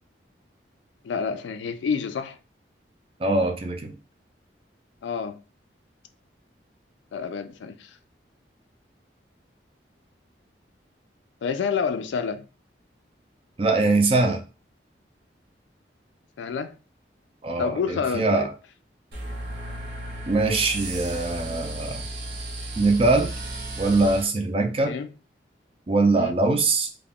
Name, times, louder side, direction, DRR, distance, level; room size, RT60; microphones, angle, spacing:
voice 1, 1.0-2.4 5.0-5.4 7.1-8.0 11.4-12.4 16.4-16.8 17.6-18.5 24.9-25.1 26.2-26.3, left 6 dB, 85° left, 0.3 m, -28 dB
voice 2, 3.2-3.9 13.6-14.4 17.4-18.5 20.3-22.1 22.8-23.3 23.8-24.9 25.9-26.9, right 3 dB, 30° right, 0.4 m, -22 dB
sound 1, 19.1-24.3, right 1 dB, 65° right, 0.7 m, -34 dB
2.3 x 2.1 x 3.5 m
head